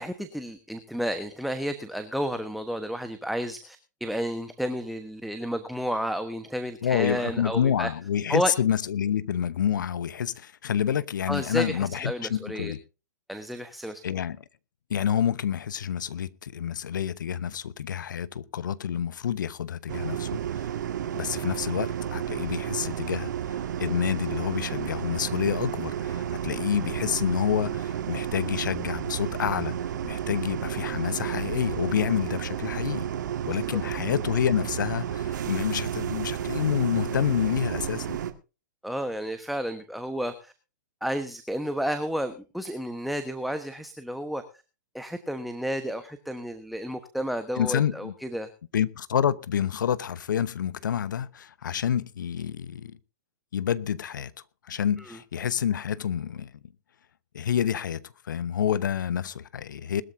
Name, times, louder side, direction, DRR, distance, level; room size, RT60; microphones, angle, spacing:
voice 1, 0.0-7.9 8.3-8.5 11.3-12.7 13.3-14.0 33.5-33.8 38.8-40.5 41.0-44.4 44.9-48.5 55.0-55.1, equal, ahead, 1.2 m, -31 dB
voice 2, 6.8-12.8 14.0-14.4 14.9-20.7 21.1-23.3 23.8-29.7 30.0-33.1 33.5-38.2 47.6-48.1 48.7-53.0 53.5-54.3 54.7-56.5 57.3-60.0, left 9 dB, 70° left, 1.0 m, -28 dB
sound 1, 19.9-38.3, right 10 dB, 65° right, 1.9 m, -32 dB
21.0 x 13.0 x 2.7 m
hypercardioid pair, 115°, 11 cm